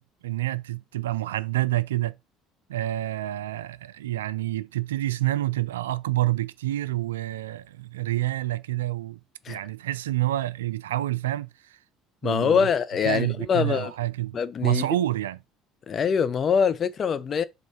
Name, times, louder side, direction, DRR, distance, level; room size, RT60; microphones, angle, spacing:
voice 1, 0.2-2.1 2.7-9.2 9.5-11.5 12.2-12.7 13.0-15.4, right 15 dB, 75° right, 0.3 m, -28 dB
voice 2, 12.2-13.9 14.3-14.9 15.9-17.4, left 6 dB, 40° left, 0.7 m, -24 dB
5.4 x 3.8 x 5.8 m
figure-of-eight pair, 60°, 0 cm